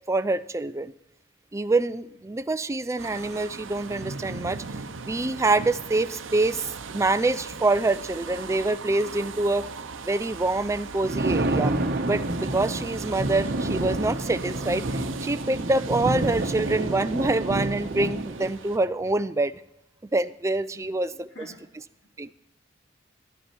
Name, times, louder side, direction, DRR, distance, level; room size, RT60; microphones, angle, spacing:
voice 1, 0.1-0.9 1.5-4.6 5.0-9.7 10.0-11.7 12.0-19.5 20.1-21.3 22.2-22.3, right 2 dB, 15° right, 12 dB, 0.4 m, -26 dB
sound 1, 3.0-18.8, right 4 dB, 90° right, 0.7 m, -40 dB
Thunder, 10.8-18.5, right 2 dB, 55° right, 1.0 m, -28 dB
voice 2, 20.7-21.7 22.0-22.3, left 3 dB, 70° left, -1 dB, 3.2 m, -49 dB
11.5 x 10.0 x 4.5 m, 0.85 s
head